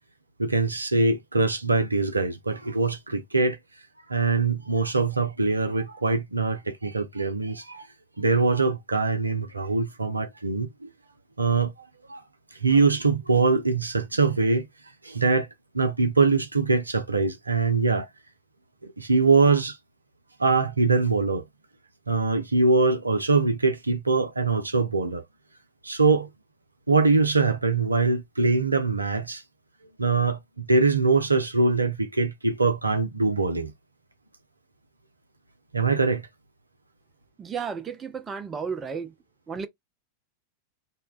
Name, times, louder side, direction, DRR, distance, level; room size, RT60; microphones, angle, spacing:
voice 1, 0.4-3.6 4.1-7.9 8.2-10.9 11.4-12.2 12.6-14.7 15.0-15.5 15.7-18.1 18.8-19.8 20.4-21.4 22.1-25.2 25.8-26.3 26.9-29.4 30.0-33.7 35.7-36.2, right 3 dB, 80° right, 0.5 m, -23 dB
voice 2, 37.4-39.1 39.5-39.7, right 6 dB, 20° right, 0.4 m, -33 dB
2.7 x 2.2 x 2.2 m
figure-of-eight pair, 90°, 0 cm